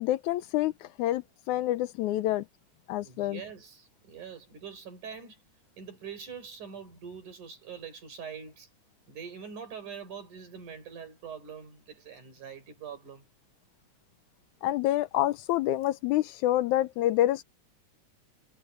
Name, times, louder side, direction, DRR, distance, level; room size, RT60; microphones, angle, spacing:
voice 1, 0.0-2.5 2.9-3.4 14.6-17.4, left 14 dB, 80° left, 2.0 m, -27 dB
voice 2, 2.9-5.4 5.8-8.7 9.1-13.3, right 6 dB, 75° right, 6.8 m, -44 dB
omnidirectional pair, 3.6 m